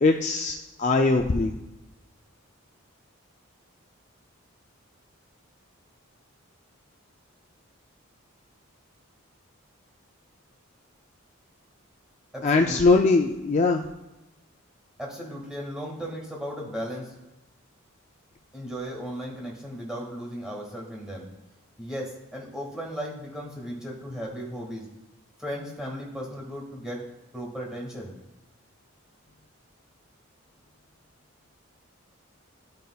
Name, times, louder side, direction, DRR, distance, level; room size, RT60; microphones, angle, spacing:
voice 1, 0.0-1.6 12.4-13.9, left 3 dB, 35° left, 3 dB, 0.3 m, -21 dB
voice 2, 12.3-12.8 15.0-17.1 18.5-21.3 21.8-24.9 25.4-27.0 27.3-28.1, equal, 5° right, -2 dB, 1.7 m, -36 dB
12.0 x 5.2 x 2.3 m, 1.0 s
head